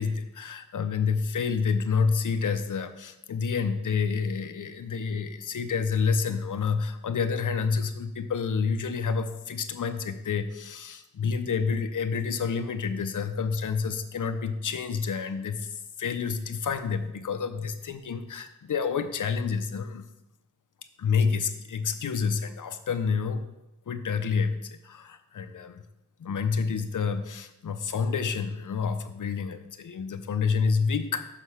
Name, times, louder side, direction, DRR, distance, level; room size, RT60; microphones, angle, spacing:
voice 1, 0.0-20.1 21.0-23.5 23.9-25.8 26.2-31.2, left 5 dB, 75° left, 8 dB, 0.6 m, -28 dB
6.4 x 5.8 x 5.7 m, 0.91 s
wide cardioid pair, 80°, 31 cm